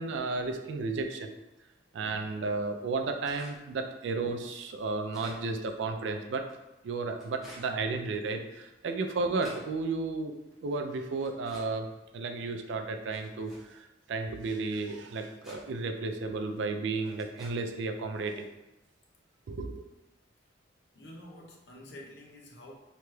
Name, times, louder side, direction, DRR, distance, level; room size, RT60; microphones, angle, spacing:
voice 1, 0.0-1.3 1.9-6.4 6.8-10.3 10.6-11.9 12.1-18.5 19.5-19.8, right 3 dB, 80° right, 6 dB, 0.3 m, -33 dB
sound 1, 3.2-3.6 4.2-4.3 4.8-5.4 6.4-6.5 7.1-7.7 8.5-8.6 9.0-9.7 10.5-10.6 11.2-11.7 12.4-12.5 13.1-13.7 14.6-14.7 15.1-15.7 16.5-16.6 17.1-17.5, equal, ahead, 0.6 m, -50 dB
voice 2, 20.9-22.7, left 1 dB, 65° left, -1 dB, 0.6 m, -49 dB
2.9 x 2.3 x 3.1 m, 1.0 s
head